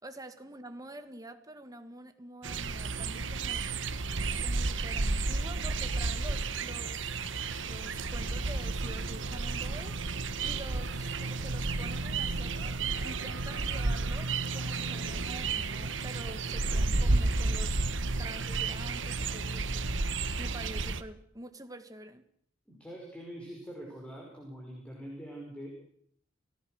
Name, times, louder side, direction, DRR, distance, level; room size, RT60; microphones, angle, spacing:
voice 1, 0.0-3.7 4.4-7.3 7.6-17.8 18.2-20.0 20.4-22.2, right 1 dB, 20° right, 1.9 m, -47 dB
sound 1, 2.4-21.0, right 3 dB, 80° right, 1.2 m, -32 dB
sound 2, 6.8-19.7, left 2 dB, 55° left, 6.3 m, -57 dB
voice 2, 22.7-25.7, equal, 5° left, 5.6 m, -44 dB
29.5 x 17.5 x 6.5 m
head